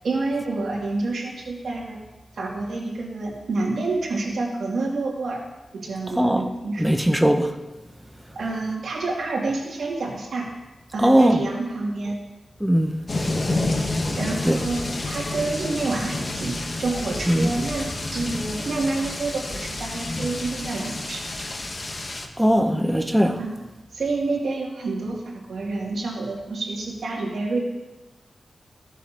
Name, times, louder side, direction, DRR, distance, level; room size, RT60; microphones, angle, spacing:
voice 1, 0.0-2.0 2.4-5.4 5.7-7.0 8.4-10.5 10.9-12.2 14.2-21.5 23.4-23.6 23.9-27.6, right 3 dB, 85° right, 2.3 m, -28 dB
voice 2, 6.2-6.5 6.8-7.5 11.0-11.4 12.6-12.9 14.5-14.7 17.3-17.5 22.4-23.4, equal, 5° right, 0.6 m, -19 dB
sound 1, 13.1-22.3, left 2 dB, 45° left, 1.0 m, -29 dB
15.5 x 7.3 x 2.8 m
wide cardioid pair, 85°, 0 cm